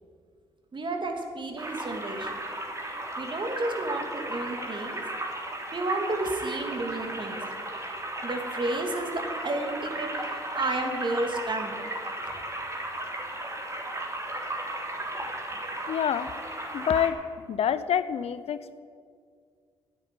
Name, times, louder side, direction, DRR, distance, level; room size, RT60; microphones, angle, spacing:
voice 1, 0.7-2.4 3.2-5.0 5.7-7.4 8.2-11.7, right 2 dB, 45° right, 3 dB, 2.7 m, -31 dB
sound 1, 1.6-17.1, right 1 dB, 25° right, 3.5 m, -35 dB
voice 2, 15.9-16.3 16.7-17.2 17.5-18.8, left 9 dB, 65° left, 14 dB, 0.7 m, -27 dB
10.5 x 9.6 x 9.4 m, 2.1 s
supercardioid pair, 50°, 11 cm